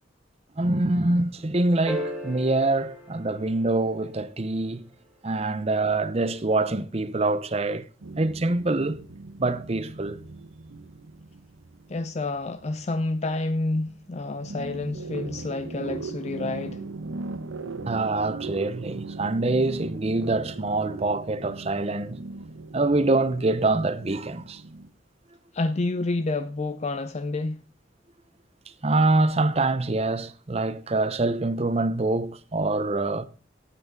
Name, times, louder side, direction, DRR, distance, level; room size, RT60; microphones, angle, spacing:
voice 1, 0.6-4.8 5.2-7.9 8.2-9.0 9.4-10.2 17.9-22.2 22.7-24.6 28.8-33.3, right 2 dB, 30° right, 0.7 m, -25 dB
sound 1, 1.9-4.4 6.6-6.7, equal, ahead, 2.9 m, -36 dB
sound 2, 8.0-13.5 13.9-24.9, right 3 dB, 85° right, 0.8 m, -39 dB
voice 2, 11.9-16.8 25.5-27.6, left 2 dB, 35° left, 0.4 m, -29 dB
12.5 x 8.4 x 3.8 m
head